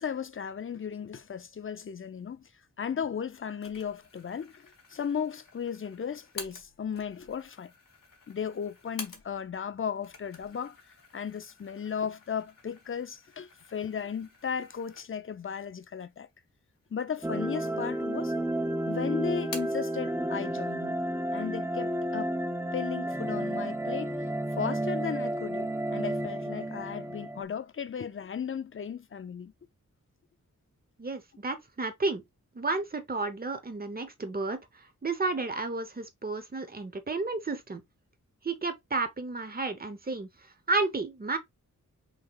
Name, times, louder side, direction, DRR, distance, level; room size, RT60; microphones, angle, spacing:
voice 1, 0.0-2.5 2.8-7.7 8.3-10.8 11.1-16.3 16.9-18.3 18.6-21.0 21.3-22.4 22.7-24.2 24.6-29.5, left 7 dB, 40° left, 0.5 m, -35 dB
sound 1, 3.6-9.6 9.9-15.4 15.8-15.9 16.7-17.4 17.7-18.5 18.8-19.9, left 4 dB, 85° left, 1.5 m, -49 dB
sound 2, 17.2-27.4, right 1 dB, 10° right, 0.5 m, -32 dB
voice 2, 31.0-32.2 32.5-34.6 35.0-37.8 38.4-40.3 40.7-41.4, right 3 dB, 30° right, 1.0 m, -32 dB
5.8 x 3.3 x 2.4 m
wide cardioid pair, 125°, 32 cm